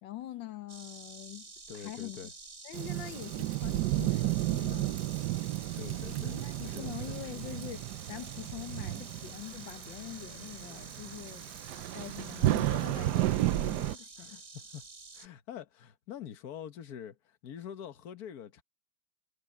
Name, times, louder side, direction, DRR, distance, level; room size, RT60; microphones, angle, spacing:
voice 1, 0.0-2.3 2.6-5.1 5.8-11.6 11.9-14.4, left 13 dB, 80° left, 1.6 m, -44 dB
Insect, 0.7-15.3, right 3 dB, 35° right, 3.5 m, -49 dB
voice 2, 1.7-2.3 5.7-7.2 14.2-14.8 15.1-18.6, left 8 dB, 55° left, 1.6 m, -45 dB
Thunderstorm / Rain, 2.7-14.0, right 16 dB, 70° right, 1.2 m, -33 dB
omnidirectional pair, 2.0 m